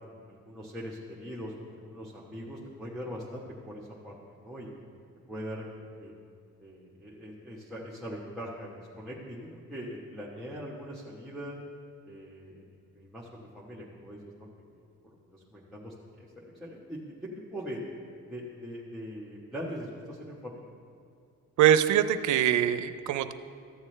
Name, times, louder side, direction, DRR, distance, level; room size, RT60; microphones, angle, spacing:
voice 1, 0.0-4.7 5.3-6.1 6.6-11.5 12.1-12.6 12.9-14.5 15.0-17.0 17.5-17.8 18.3-20.7, equal, ahead, -7 dB, 1.2 m, -42 dB
voice 2, 21.6-23.3, right 10 dB, 75° right, 11 dB, 0.5 m, -23 dB
14.0 x 7.1 x 3.3 m, 2.3 s
cardioid pair, 90°, 30 cm